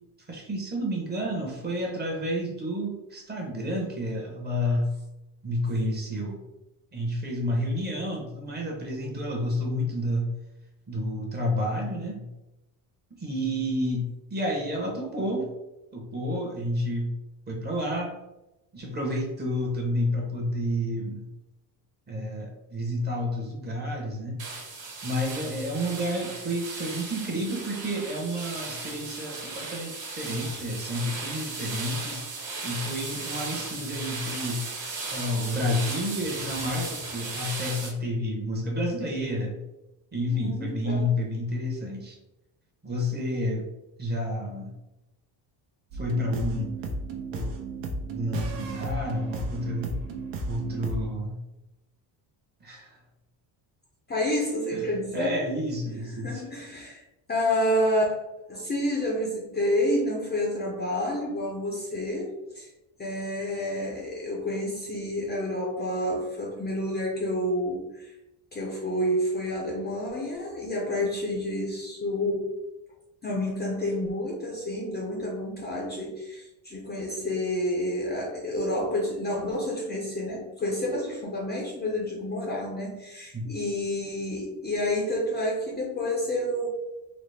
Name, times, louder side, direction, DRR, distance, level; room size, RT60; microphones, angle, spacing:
voice 1, 0.3-4.9 5.4-6.4 6.9-10.3 10.9-12.3 13.2-15.5 15.9-17.1 17.5-18.1 18.7-21.3 22.1-24.4 25.0-32.2 32.6-34.6 35.1-39.6 40.1-42.2 42.8-43.7 44.0-44.7 45.9-46.7 47.3-47.8 48.1-50.0 50.5-51.4 52.6-53.0 54.7-56.4 83.3-83.4, equal, 20° right, -1 dB, 0.9 m, -30 dB
sound 1, 24.4-37.9, right 3 dB, 45° right, 1.4 m, -36 dB
voice 2, 40.3-41.1 54.1-55.4 56.2-57.0 57.3-58.2 58.5-62.7 63.0-68.1 68.5-72.6 73.2-86.7, left 1 dB, 20° left, -3 dB, 0.6 m, -29 dB
sound 2, 45.9-51.1, right 2 dB, 70° right, 0.8 m, -34 dB
4.0 x 2.0 x 3.3 m, 0.96 s
cardioid pair, 135°, 45 cm